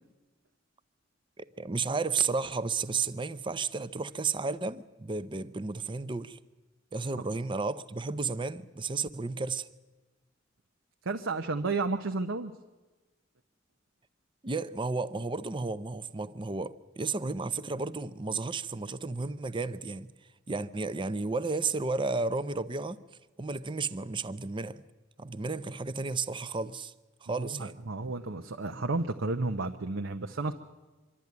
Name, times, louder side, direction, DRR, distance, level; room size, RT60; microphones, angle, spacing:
voice 1, 1.4-6.4 6.9-9.7 14.4-20.1 20.5-23.0 23.4-24.8 25.2-26.9 27.2-27.8, right 4 dB, 25° right, 0.6 m, -33 dB
voice 2, 11.0-12.5 27.4-30.5, right 3 dB, 80° right, 0.8 m, -32 dB
24.5 x 12.0 x 9.5 m
head